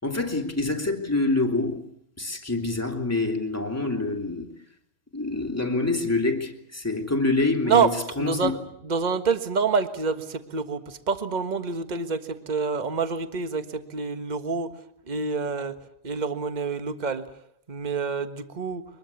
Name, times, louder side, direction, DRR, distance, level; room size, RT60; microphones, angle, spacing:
voice 1, 0.0-1.9 2.2-4.5 5.1-8.5, left 2 dB, 5° left, 2.7 m, -26 dB
voice 2, 8.2-8.6 8.8-14.7 15.1-15.7 16.0-17.2 17.7-18.8, right 5 dB, 25° right, 1.3 m, -27 dB
23.5 x 22.0 x 8.4 m
omnidirectional pair, 2.4 m